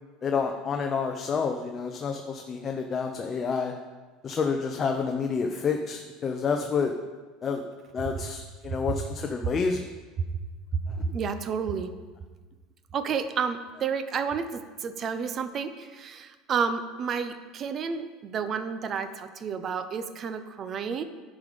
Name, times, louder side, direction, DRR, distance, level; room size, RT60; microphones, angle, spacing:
voice 1, 0.2-3.7 4.2-6.9 7.4-7.6 7.9-9.8, left 5 dB, 30° left, 4 dB, 0.6 m, -29 dB
voice 2, 10.7-11.9 12.9-21.0, right 6 dB, 40° right, 10 dB, 0.7 m, -31 dB
10.5 x 5.1 x 5.1 m, 1.4 s
supercardioid pair, 115°, 0 cm